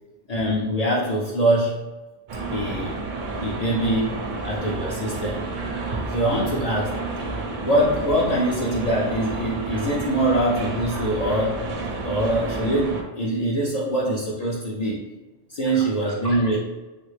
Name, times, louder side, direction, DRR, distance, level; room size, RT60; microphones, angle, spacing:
voice 1, 0.3-1.9 2.5-3.0 3.4-5.5 6.1-7.0 7.6-11.7 12.0-15.1 15.5-16.6, right 1 dB, 70° left, -4 dB, 0.3 m, -23 dB
sound 1, 2.3-13.0, right 3 dB, 55° right, 0.6 m, -30 dB
3.1 x 2.5 x 3.2 m, 1.2 s
omnidirectional pair, 1.2 m